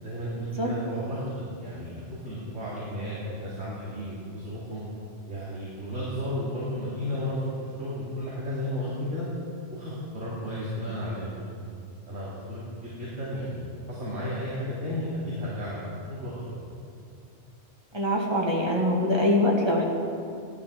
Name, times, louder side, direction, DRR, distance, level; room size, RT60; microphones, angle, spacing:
voice 1, 0.0-4.8 5.3-9.3 9.7-11.5 12.1-16.6, equal, 75° right, -8 dB, 3.2 m, -33 dB
voice 2, 17.9-19.9, left 1 dB, 20° right, -3 dB, 2.4 m, -23 dB
16.0 x 12.0 x 6.2 m, 2.5 s
omnidirectional pair, 1.3 m